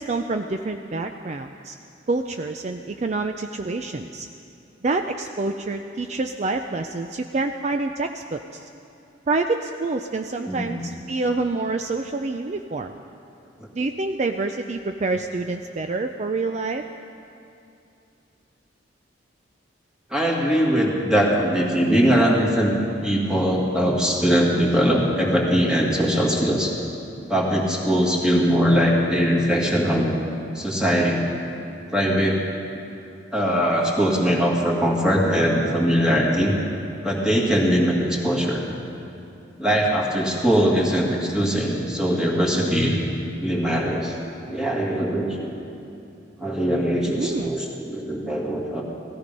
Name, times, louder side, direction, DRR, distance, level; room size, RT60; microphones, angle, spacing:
voice 1, 0.0-1.7 2.1-4.3 4.8-8.6 9.3-13.0 13.8-16.8 47.1-47.5, right 3 dB, 40° right, 6 dB, 0.4 m, -27 dB
voice 2, 10.5-10.8 20.1-22.7 23.0-26.7 27.3-30.1 30.5-31.3 31.9-32.4 33.3-36.5 37.0-38.6 39.6-43.0 43.4-44.1 44.5-45.5 46.4-48.8, equal, 5° right, -3 dB, 2.0 m, -21 dB
17.0 x 14.5 x 5.3 m, 2.6 s
head